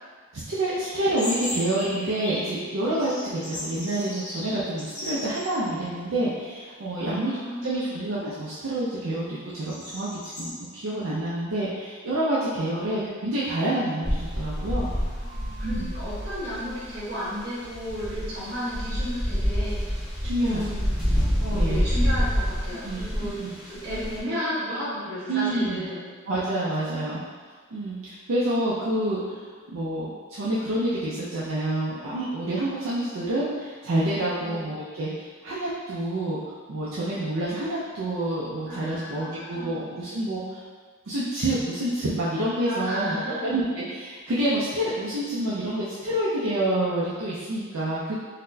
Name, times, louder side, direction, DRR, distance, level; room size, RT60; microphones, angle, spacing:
voice 1, 0.3-14.9 15.6-15.9 20.2-20.6 21.2-21.8 22.8-23.5 25.3-25.9 26.3-27.2 27.7-36.4 36.7-40.6 41.1-48.1, right 1 dB, 70° right, -8 dB, 0.5 m, -28 dB
sound 1, 0.8-2.6 2.9-5.6 6.0-6.1 6.8-7.2 7.7-10.5, left 1 dB, 35° left, 0.7 m, -37 dB
voice 2, 7.0-8.0 15.2-20.9 21.4-23.4 23.6-26.1 34.4-34.7 38.7-39.9 42.6-43.5, equal, 45° right, -10 dB, 1.1 m, -33 dB
sound 2, 14.0-24.2, equal, ahead, 0.7 m, -27 dB
4.0 x 2.1 x 2.6 m, 1.5 s
head